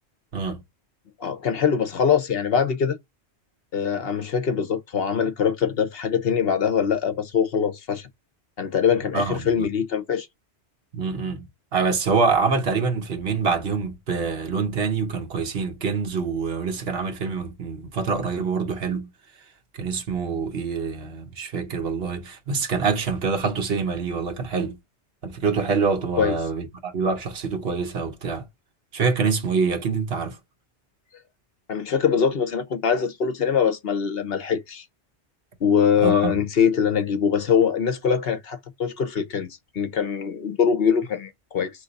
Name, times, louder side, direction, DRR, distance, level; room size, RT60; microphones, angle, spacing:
voice 1, 1.2-3.0 3.7-8.1 8.6-10.3 26.2-26.3 31.7-34.8 35.6-39.5 39.7-41.7, left 7 dB, 60° left, 1.0 m, -23 dB
voice 2, 9.1-9.7 10.9-19.1 19.8-24.8 25.2-28.4 28.9-30.4 36.0-36.3, right 5 dB, 60° right, 1.1 m, -25 dB
3.8 x 3.1 x 4.0 m
omnidirectional pair, 1.1 m